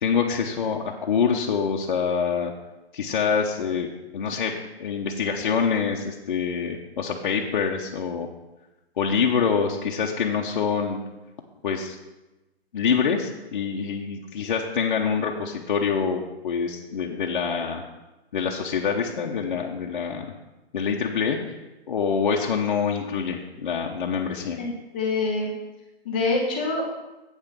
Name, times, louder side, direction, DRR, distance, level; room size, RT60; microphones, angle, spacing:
voice 1, 0.0-2.5 2.9-4.5 4.8-8.3 9.0-11.0 11.6-12.0 12.7-17.8 18.3-20.3 20.7-21.6 21.9-24.6, left 6 dB, 45° left, 0 dB, 0.8 m, -25 dB
voice 2, 24.6-25.5 26.0-26.8, left 3 dB, 10° left, -2 dB, 0.5 m, -25 dB
8.1 x 5.9 x 6.7 m, 1.0 s
hypercardioid pair, 165°, 32 cm